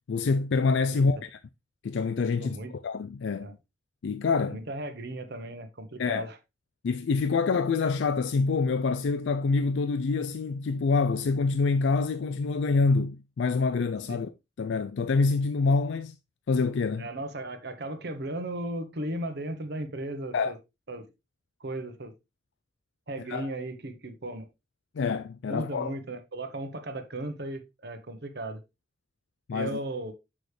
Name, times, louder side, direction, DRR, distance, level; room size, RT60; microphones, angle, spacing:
voice 1, 0.1-1.4 1.8-2.6 2.8-3.6 4.0-4.6 6.0-6.3 6.8-14.3 14.6-16.2 16.5-17.1 20.3-20.5 23.3-23.5 25.0-26.0 29.5-29.8, left 4 dB, 75° left, 0.4 m, -26 dB
voice 2, 2.4-2.7 3.4-3.5 4.5-6.4 14.1-14.2 17.0-20.6 20.9-21.1 21.6-22.1 23.1-24.5 25.5-28.6 29.5-30.1, right 1 dB, 60° right, 1.1 m, -36 dB
6.6 x 6.1 x 3.2 m
head